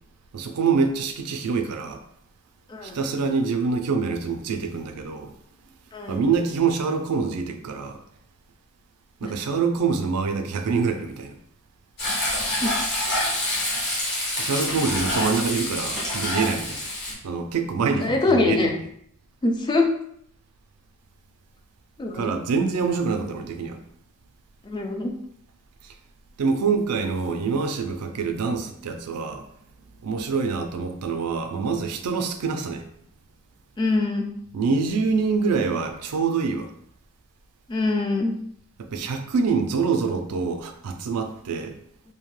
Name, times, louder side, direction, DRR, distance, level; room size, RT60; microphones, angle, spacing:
voice 1, 0.3-2.0 2.8-5.3 6.1-8.0 9.2-11.3 14.4-16.9 17.2-18.7 22.1-23.8 25.8-25.9 26.4-29.5 30.0-32.9 34.5-36.7 38.9-41.8, right 5 dB, 85° right, 6 dB, 0.4 m, -25 dB
voice 2, 5.9-6.2 9.2-9.3 12.6-12.7 18.0-18.7 19.4-19.9 22.0-22.3 24.6-25.1 33.8-34.3 37.7-38.4, left 2 dB, 20° left, 2 dB, 0.3 m, -23 dB
Frying (food), 12.0-17.1, left 1 dB, 50° left, 1.0 m, -27 dB
2.7 x 2.1 x 3.1 m, 0.70 s
head